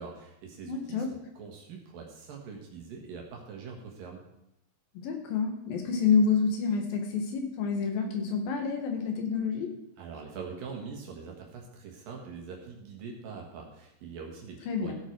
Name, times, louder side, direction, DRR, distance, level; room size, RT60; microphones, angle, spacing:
voice 1, 0.0-4.2 10.0-14.9, right 5 dB, 75° right, 0 dB, 3.3 m, -43 dB
voice 2, 0.7-1.1 5.0-9.7 14.7-14.9, left 5 dB, 80° left, 3 dB, 3.5 m, -28 dB
15.5 x 8.0 x 4.6 m, 0.86 s
omnidirectional pair, 4.1 m